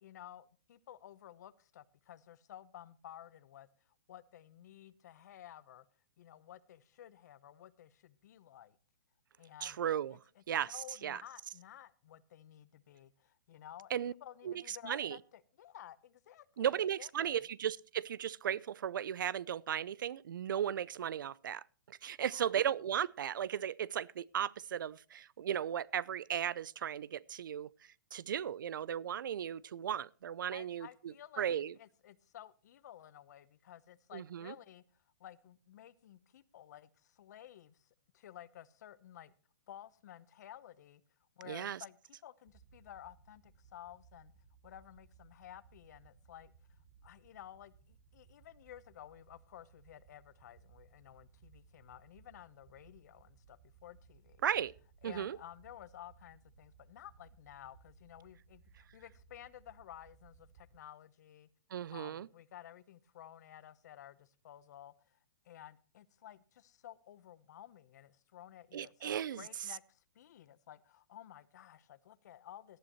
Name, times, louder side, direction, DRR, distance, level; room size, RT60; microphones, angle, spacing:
voice 1, 0.0-3.7 4.1-5.8 6.2-8.8 9.4-9.8 10.1-17.4 22.2-22.5 30.5-31.4 31.8-34.8 35.2-39.3 39.7-41.0 41.4-42.0 42.2-44.3 44.6-54.4 55.0-61.5 61.9-65.2 65.4-72.8, left 11 dB, 55° left, 0.9 m, -54 dB
voice 2, 9.6-10.2 10.5-11.2 13.9-14.1 14.4-15.2 16.6-31.7 34.1-34.5 41.4-41.8 54.4-54.7 55.0-55.4 61.7-62.3 68.7-69.4, right 9 dB, 70° right, 0.5 m, -36 dB
sound 1, 42.4-60.8, right 6 dB, 45° right, 1.3 m, -63 dB
18.0 x 11.5 x 3.0 m
hypercardioid pair, 155°, 11 cm